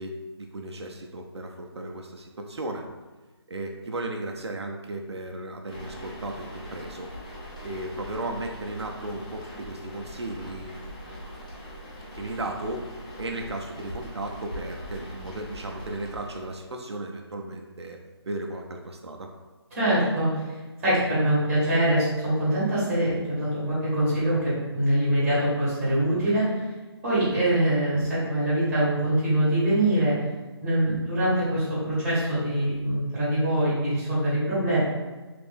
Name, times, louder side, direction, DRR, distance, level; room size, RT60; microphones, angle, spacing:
voice 1, 0.0-2.9 3.5-7.1 7.6-11.4 12.1-12.9 13.2-18.0 18.3-19.3, right 2 dB, 80° right, 2 dB, 0.5 m, -35 dB
sound 1, 5.7-16.7, equal, 15° left, 0.4 m, -41 dB
voice 2, 19.7-20.6 20.8-26.6 27.0-30.1 30.6-34.8, right 1 dB, 5° right, -11 dB, 1.3 m, -24 dB
3.3 x 2.6 x 3.5 m, 1.3 s
figure-of-eight pair, 170°, 14 cm